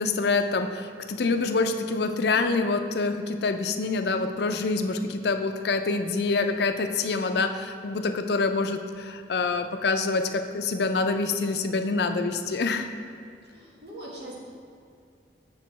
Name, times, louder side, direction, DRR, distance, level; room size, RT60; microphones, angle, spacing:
voice 1, 0.0-12.9, left 3 dB, 65° left, 7 dB, 0.4 m, -26 dB
voice 2, 13.4-14.4, right 1 dB, 65° right, -5 dB, 1.7 m, -42 dB
6.4 x 6.2 x 4.1 m, 2.4 s
head